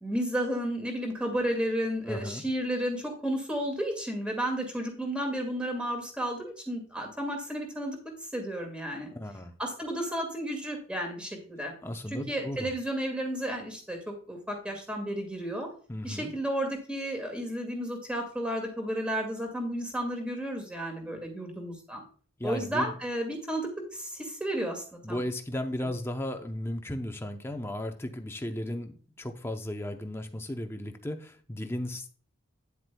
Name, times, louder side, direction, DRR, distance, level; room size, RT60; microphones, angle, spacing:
voice 1, 0.0-8.0 8.3-9.1 9.6-11.7 12.1-15.7 16.0-22.0 22.4-25.2 25.8-25.9, right 1 dB, 5° right, 2 dB, 2.0 m, -32 dB
voice 2, 2.0-2.4 9.1-9.5 11.8-12.7 15.9-16.3 22.4-22.9 25.0-32.1, left 1 dB, 10° left, 5 dB, 0.6 m, -35 dB
9.7 x 7.7 x 2.3 m, 0.43 s
head